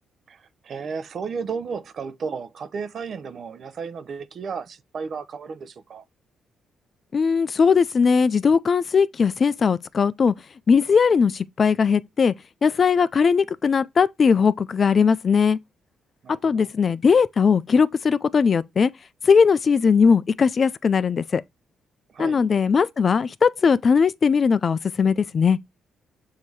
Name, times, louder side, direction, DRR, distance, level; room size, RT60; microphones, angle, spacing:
voice 1, 0.3-6.0 16.2-16.7 22.1-22.4, right 5 dB, 55° right, 0.7 m, -33 dB
voice 2, 7.1-10.3 10.7-12.3 12.6-15.6 16.4-18.9 19.3-21.4 22.2-25.6, left 5 dB, 40° left, 0.4 m, -19 dB
7.1 x 2.8 x 4.7 m
cardioid pair, 90°, 0 cm